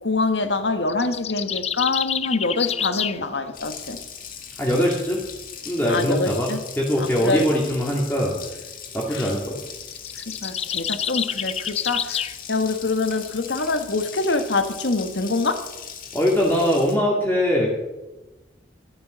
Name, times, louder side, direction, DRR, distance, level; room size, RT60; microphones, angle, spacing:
voice 1, 0.0-4.0 5.9-6.6 7.0-7.6 9.1-9.3 10.3-12.2 12.5-15.6, left 3 dB, 80° left, 8 dB, 1.4 m, -25 dB
sound 1, 0.9-3.2 9.8-12.4, left 9 dB, 35° left, 0.4 m, -28 dB
Water tap faucet, 3.5-17.0, left 7 dB, 50° left, 1.9 m, -39 dB
voice 2, 4.6-5.2 5.6-8.4 8.9-9.7 16.1-17.7, equal, 10° left, -3 dB, 2.1 m, -22 dB
12.5 x 11.0 x 6.2 m, 1.0 s
head